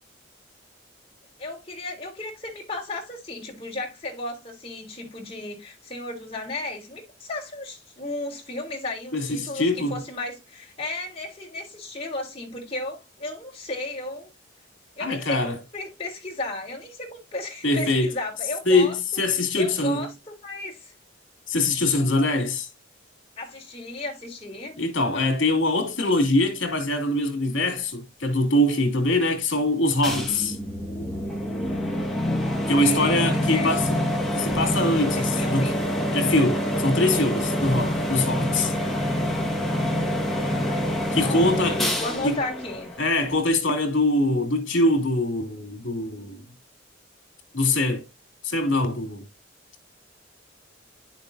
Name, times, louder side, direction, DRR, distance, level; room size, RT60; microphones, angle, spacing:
voice 1, 1.4-14.3 15.0-19.0 19.5-20.9 23.4-25.3 32.6-33.7 35.2-35.8 40.4-42.9, left 2 dB, 30° left, 3.3 m, -34 dB
voice 2, 9.1-10.0 15.0-15.6 17.6-18.1 18.7-20.1 21.5-22.7 24.8-30.6 32.7-33.9 34.3-35.7 36.1-38.7 41.1-41.8 42.2-42.4 43.0-46.4 47.5-48.1 48.4-49.2, left 2 dB, 75° left, 2.6 m, -23 dB
sound 1, 30.0-43.5, equal, ahead, 1.8 m, -26 dB
10.5 x 6.7 x 2.7 m
head